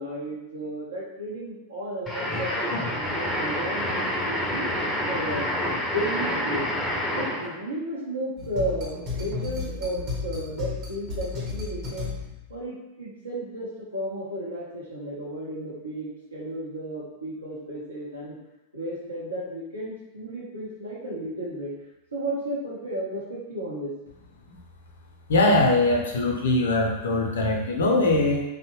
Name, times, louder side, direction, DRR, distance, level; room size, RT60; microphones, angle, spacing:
voice 1, 0.0-2.5 2.9-4.8 5.1-5.5 5.9-6.7 7.1-12.1 12.5-18.4 18.7-21.7 22.1-23.9, right 1 dB, 75° right, -6 dB, 0.7 m, -33 dB
sound 1, 2.1-7.6, left 1 dB, 10° left, 0.5 m, -28 dB
sound 2, 8.4-12.6, left 4 dB, 35° right, 0.8 m, -33 dB
voice 2, 25.3-28.4, left 2 dB, 65° left, 0 dB, 0.5 m, -21 dB
2.7 x 2.0 x 2.9 m, 0.93 s
figure-of-eight pair, 90°, 0 cm